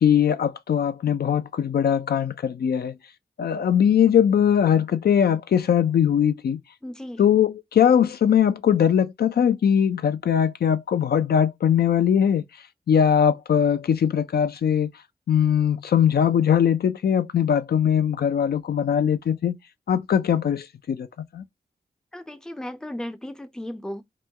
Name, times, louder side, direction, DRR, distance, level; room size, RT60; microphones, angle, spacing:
voice 1, 0.0-2.9 3.4-6.6 7.2-12.4 12.9-14.9 15.3-19.5 19.9-21.1 21.3-21.4, left 8 dB, 70° left, 0.4 m, -20 dB
voice 2, 6.8-7.2 22.1-24.0, left 1 dB, 5° left, 0.4 m, -35 dB
3.0 x 2.1 x 3.4 m
cardioid pair, 45°, 17 cm